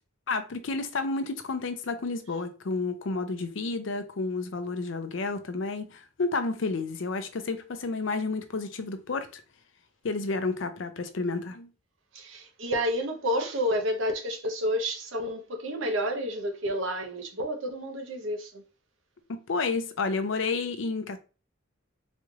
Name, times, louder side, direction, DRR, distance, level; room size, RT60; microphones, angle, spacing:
voice 1, 0.3-9.4 10.0-11.7 19.3-21.2, left 3 dB, 65° left, 0.5 m, -31 dB
voice 2, 12.1-18.6, equal, 70° right, 0.8 m, -30 dB
4.1 x 3.1 x 2.4 m
head